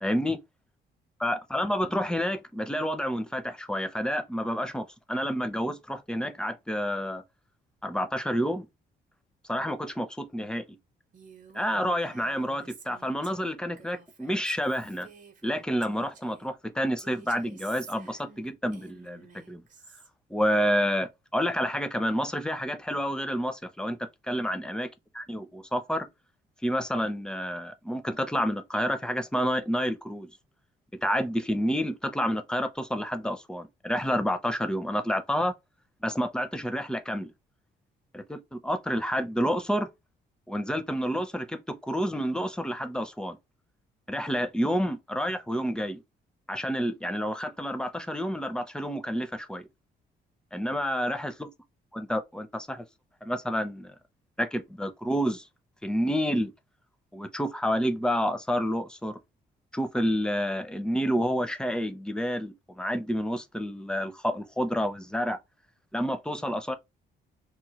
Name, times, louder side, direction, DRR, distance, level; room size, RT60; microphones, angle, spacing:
voice 1, 0.0-0.4 1.2-7.2 7.8-8.7 9.5-10.6 11.5-15.1 15.4-19.6 20.3-24.9 25.2-26.1 26.6-30.3 31.0-35.5 36.0-37.3 38.1-39.9 40.5-43.4 44.1-46.0 46.5-49.7 50.5-51.5 51.9-52.8 53.2-53.9 54.4-55.5 55.8-56.5 57.1-59.2 59.7-65.4 65.9-66.8, equal, 5° left, 0.4 m, -29 dB
Female speech woman speaking, 11.1-16.5 17.0-20.1, right 5 dB, 45° right, 0.7 m, -51 dB
3.0 x 2.1 x 2.8 m
cardioid pair, 110°, 19 cm